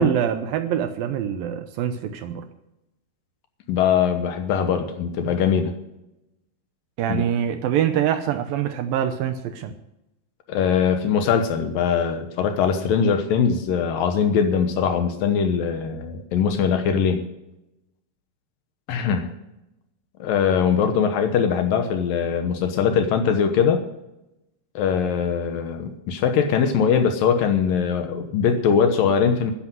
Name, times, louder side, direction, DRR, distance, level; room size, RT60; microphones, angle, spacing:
voice 1, 0.0-2.5 7.0-9.7, right 9 dB, 75° right, 9 dB, 2.3 m, -24 dB
voice 2, 3.7-5.7 7.1-7.2 10.5-17.2 18.9-19.3 20.2-23.8 24.8-29.5, left 7 dB, 70° left, 7 dB, 2.5 m, -21 dB
12.0 x 10.5 x 7.7 m, 0.90 s
omnidirectional pair, 4.7 m